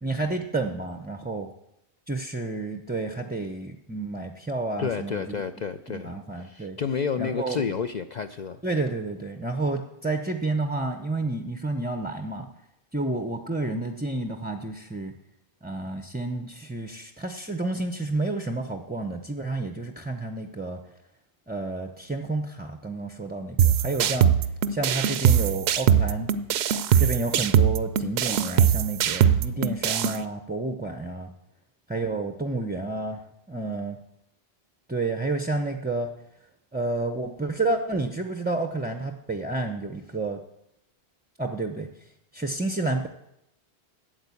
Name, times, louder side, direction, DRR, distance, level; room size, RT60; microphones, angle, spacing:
voice 1, 0.0-1.5 2.1-5.4 5.9-6.8 7.2-7.7 8.6-12.5 12.9-15.1 15.6-20.8 21.5-24.3 24.7-26.3 27.0-31.3 31.9-34.0 34.9-36.1 36.7-40.4 41.4-41.9 42.3-43.1, right 2 dB, 10° right, 6 dB, 0.5 m, -30 dB
voice 2, 4.8-8.6, left 6 dB, 55° left, 8 dB, 0.5 m, -30 dB
sound 1, 23.6-30.2, right 8 dB, 75° right, 0.8 m, -22 dB
8.9 x 7.9 x 8.3 m, 0.82 s
omnidirectional pair, 1.1 m